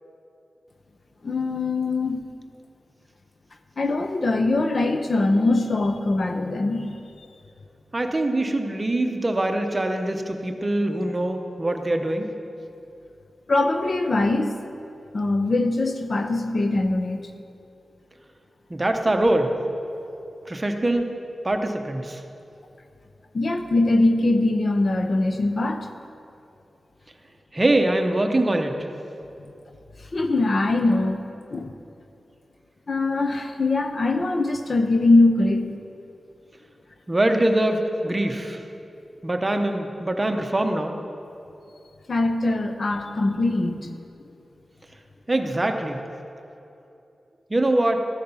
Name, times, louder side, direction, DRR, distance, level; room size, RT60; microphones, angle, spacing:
voice 1, 1.2-2.3 3.8-7.3 13.5-14.5 15.1-17.3 23.3-25.9 29.4-29.5 30.1-31.2 31.5-31.8 32.9-35.7 42.1-43.9, left 2 dB, 45° left, 7 dB, 0.6 m, -22 dB
voice 2, 7.9-12.3 18.7-19.5 20.5-21.1 21.4-22.2 27.5-28.8 37.1-38.6 39.2-40.9 45.3-46.0 47.5-48.0, right 1 dB, 20° right, 5 dB, 0.8 m, -23 dB
14.0 x 8.4 x 5.6 m, 2.8 s
wide cardioid pair, 140°, 0 cm